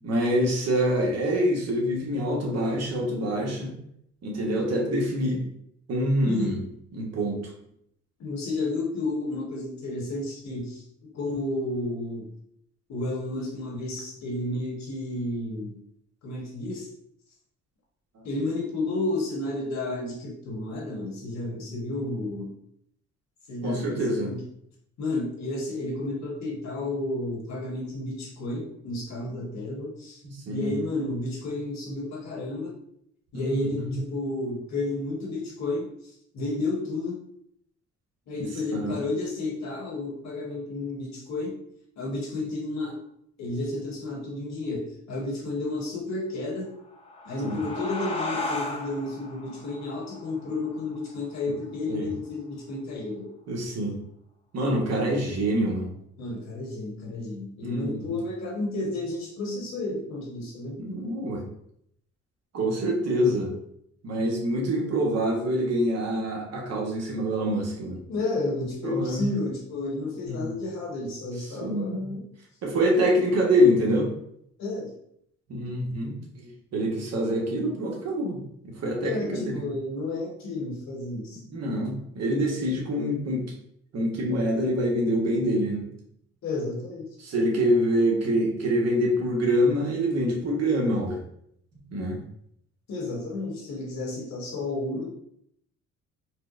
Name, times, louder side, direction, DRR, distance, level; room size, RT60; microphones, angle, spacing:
voice 1, 0.0-3.7 4.2-5.4 5.9-6.6 6.9-7.5 20.5-20.7 23.6-24.3 30.5-30.7 33.3-34.0 38.7-39.0 47.4-47.6 51.9-52.1 53.5-54.0 54.5-55.9 57.6-58.0 60.8-61.4 62.5-63.5 64.0-68.0 68.8-69.2 70.3-70.5 71.6-72.1 72.6-74.1 75.5-79.6 81.5-83.5 83.9-85.9 87.2-91.2 91.9-92.2, equal, 60° right, 0 dB, 1.0 m, -25 dB
voice 2, 6.2-6.6 8.2-10.8 11.1-12.3 12.9-15.8 16.2-16.9 18.2-22.5 23.5-24.4 25.0-30.2 30.5-32.7 33.3-37.2 38.3-41.6 42.0-43.0 43.4-46.7 47.2-53.3 54.9-55.1 56.2-60.8 68.1-72.2 74.6-74.9 75.7-75.8 79.0-81.4 86.4-87.0 92.9-95.1, left 2 dB, 60° left, -2 dB, 1.2 m, -31 dB
sound 1, 46.8-52.0, left 2 dB, 20° left, 0.7 m, -36 dB
4.4 x 2.1 x 2.4 m, 0.72 s
cardioid pair, 90°, 30 cm